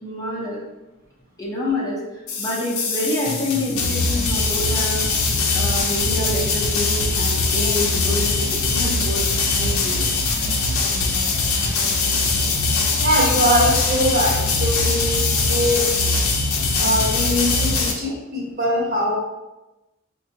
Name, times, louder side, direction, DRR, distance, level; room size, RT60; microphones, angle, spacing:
voice 1, 0.0-0.6 1.4-2.0 2.4-5.1 5.5-9.2 9.5-10.0, left 1 dB, 15° left, -5 dB, 0.6 m, -27 dB
sound 1, 2.3-17.9, left 3 dB, 80° left, 0.5 m, -21 dB
voice 2, 13.0-15.9 16.8-19.1, equal, 45° right, -4 dB, 1.0 m, -22 dB
4.6 x 2.2 x 2.8 m, 1.0 s
head